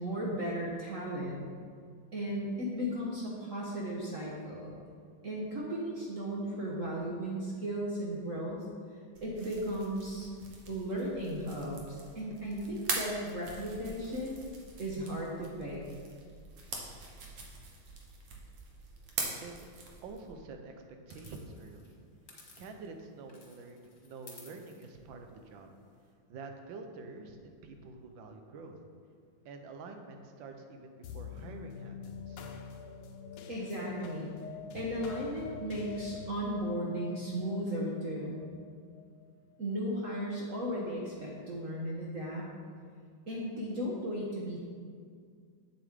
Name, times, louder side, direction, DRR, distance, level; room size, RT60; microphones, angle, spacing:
voice 1, 0.0-1.5 2.1-4.8 5.2-8.7 9.2-10.3 10.7-14.4 14.8-15.8 33.5-34.3 34.7-38.4 39.6-42.5 43.3-44.6, equal, 50° right, -4 dB, 1.2 m, -35 dB
sound 1, 9.2-20.3, right 3 dB, 75° right, 1.7 m, -43 dB
voice 2, 20.0-20.7 21.1-22.0 22.6-25.7 26.3-28.8 29.4-32.4, right 3 dB, 90° right, 5 dB, 1.6 m, -47 dB
sound 2, 21.1-23.0 23.3-26.1, left 3 dB, 40° left, 1.6 m, -57 dB
sound 3, 31.0-39.8, left 6 dB, 75° left, 1.3 m, -46 dB
7.8 x 7.8 x 3.6 m, 2.1 s
omnidirectional pair, 2.0 m